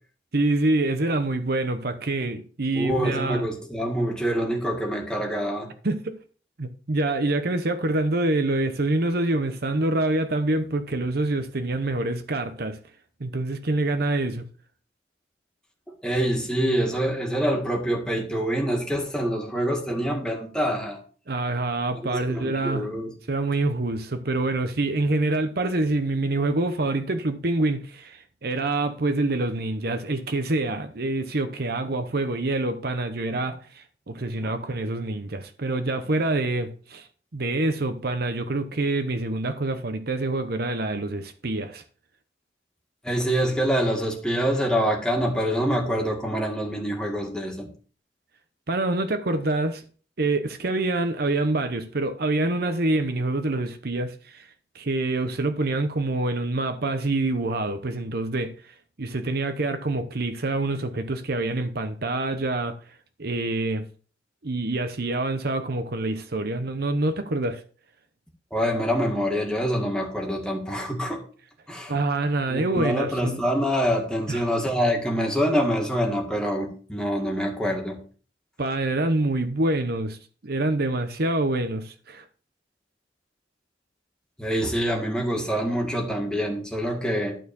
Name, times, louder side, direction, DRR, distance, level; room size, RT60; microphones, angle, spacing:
voice 1, 0.3-3.5 5.8-6.2 6.6-12.8 13.2-14.4 21.3-22.9 23.3-37.1 37.3-41.8 48.7-49.8 50.2-54.5 54.7-62.8 63.2-63.9 64.4-67.6 71.9-73.4 74.3-74.5 78.6-80.2 80.4-82.2, right 2 dB, 55° right, 0.9 m, -26 dB
voice 2, 2.7-5.7 16.0-21.0 22.1-23.1 34.4-34.5 43.0-47.7 68.5-71.2 71.7-71.9 72.5-78.0 84.4-87.4, equal, 5° left, 2.0 m, -25 dB
12.0 x 4.3 x 7.0 m
head